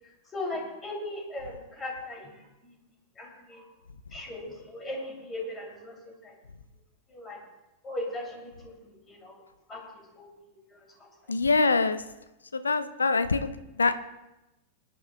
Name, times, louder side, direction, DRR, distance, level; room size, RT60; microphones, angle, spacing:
voice 1, 0.3-2.7 3.2-3.7 4.1-6.3 7.1-7.4 7.8-9.4 9.7-11.1, left 1 dB, 20° left, 0 dB, 3.0 m, -39 dB
voice 2, 11.3-12.0 12.5-13.5 13.8-13.9, left 3 dB, 75° left, 11 dB, 0.6 m, -24 dB
21.5 x 10.0 x 2.3 m, 0.97 s
figure-of-eight pair, 90°, 0 cm